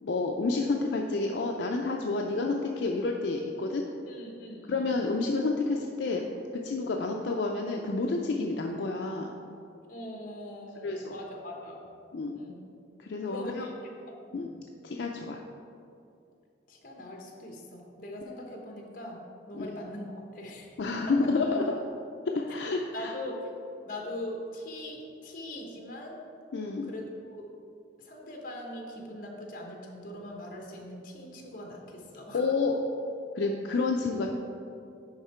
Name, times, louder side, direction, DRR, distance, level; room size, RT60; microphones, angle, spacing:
voice 1, 0.0-3.8 4.7-6.3 6.6-9.3 10.8-11.2 12.1-12.4 13.0-13.7 14.3-14.5 14.8-15.4 19.5-19.7 20.8-21.8 22.3-23.1 26.5-26.9 32.3-32.8 33.4-34.3, left 3 dB, 70° left, 1 dB, 0.4 m, -29 dB
voice 2, 4.1-5.0 9.9-11.8 12.3-12.7 13.3-13.7 14.1-14.4 16.7-21.2 22.9-23.4 23.9-26.2 26.8-27.4 28.0-32.4, left 1 dB, 45° left, 0 dB, 1.1 m, -41 dB
10.5 x 3.7 x 4.3 m, 2.5 s
head